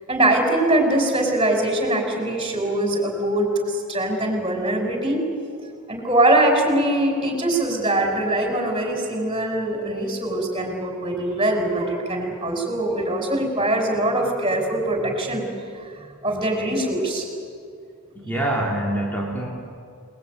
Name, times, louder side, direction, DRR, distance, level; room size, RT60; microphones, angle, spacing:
voice 1, 0.1-5.2 5.9-15.5 16.2-17.3, right 1 dB, 25° right, 2 dB, 5.6 m, -22 dB
voice 2, 18.2-19.5, right 1 dB, 10° left, -3 dB, 3.3 m, -25 dB
29.0 x 20.5 x 9.4 m, 2.3 s
head